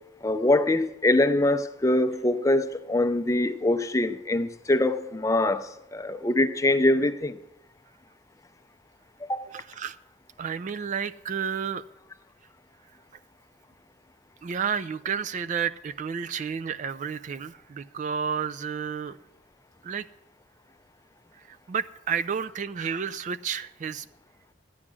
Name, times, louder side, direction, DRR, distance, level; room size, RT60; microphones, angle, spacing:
voice 1, 0.2-7.3 9.3-9.4, left 1 dB, 15° left, 0.5 m, -23 dB
voice 2, 9.5-10.0 10.4-11.8 14.4-19.2 19.8-20.1 21.5-24.1, right 7 dB, 40° right, 0.3 m, -31 dB
12.5 x 9.8 x 6.2 m
head